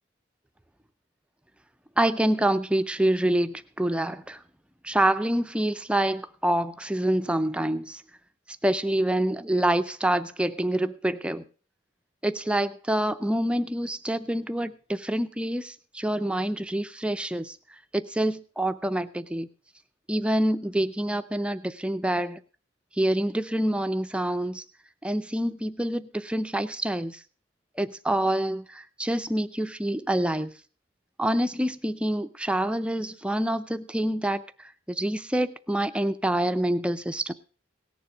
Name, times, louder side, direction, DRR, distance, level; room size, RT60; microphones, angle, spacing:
voice 1, 2.0-4.4 4.8-8.0 8.6-11.4 12.2-17.6 17.9-19.5 20.1-22.4 23.0-24.6 25.0-27.2 27.8-30.5 31.2-34.4 34.9-37.3, right 1 dB, 5° right, 11 dB, 0.5 m, -26 dB
17.5 x 7.1 x 4.9 m, 0.39 s
head